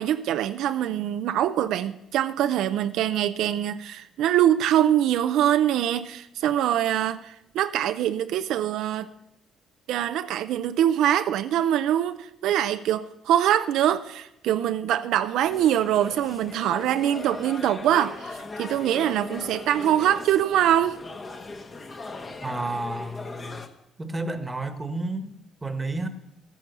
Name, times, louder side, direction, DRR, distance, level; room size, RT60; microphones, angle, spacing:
voice 1, 0.0-9.1 9.9-21.0, right 11 dB, 75° right, 10 dB, 0.5 m, -24 dB
sound 1, 15.4-23.7, left 3 dB, 30° left, 1.2 m, -39 dB
voice 2, 22.4-23.6 24.0-25.3 25.6-26.1, right 2 dB, 15° right, 9 dB, 1.3 m, -31 dB
13.0 x 9.2 x 6.8 m, 0.83 s
cardioid pair, 110°, 0 cm